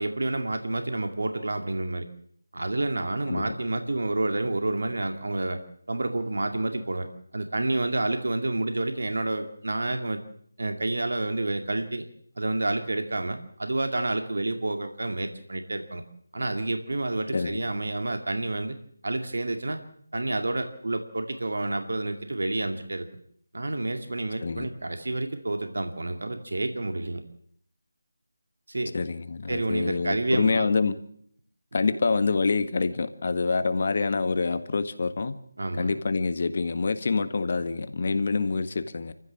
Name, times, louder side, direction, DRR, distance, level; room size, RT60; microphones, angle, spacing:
voice 1, 0.0-2.1 2.5-5.6 5.9-7.1 7.3-10.2 10.6-12.0 12.4-16.0 16.3-18.8 19.0-19.8 20.1-23.1 23.5-27.2 28.7-28.9 29.5-30.7 35.6-35.9, right 2 dB, 70° right, 2.4 m, -29 dB
voice 2, 17.3-17.6 24.4-24.7 28.9-31.0 31.7-35.4 35.8-39.1, left 4 dB, 45° left, 1.7 m, -26 dB
28.0 x 15.0 x 7.5 m
figure-of-eight pair, 165°, 0 cm